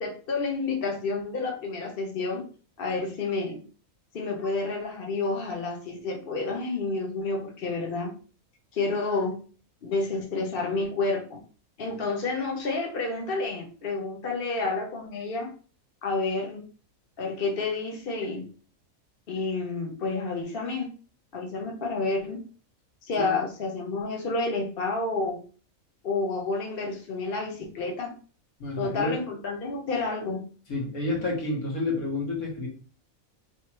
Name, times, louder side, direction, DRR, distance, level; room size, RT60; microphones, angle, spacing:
voice 1, 0.0-2.4 2.8-3.6 4.1-8.1 8.7-9.4 9.8-11.4 11.8-15.5 16.0-16.7 17.2-18.5 19.3-20.9 21.3-22.4 23.0-25.4 26.0-28.1 28.8-30.5, left 3 dB, 45° left, 1 dB, 1.2 m, -29 dB
voice 2, 28.6-29.1 30.7-32.7, left 2 dB, 80° left, -1 dB, 1.9 m, -29 dB
3.5 x 3.1 x 4.3 m, 0.38 s
omnidirectional pair, 1.5 m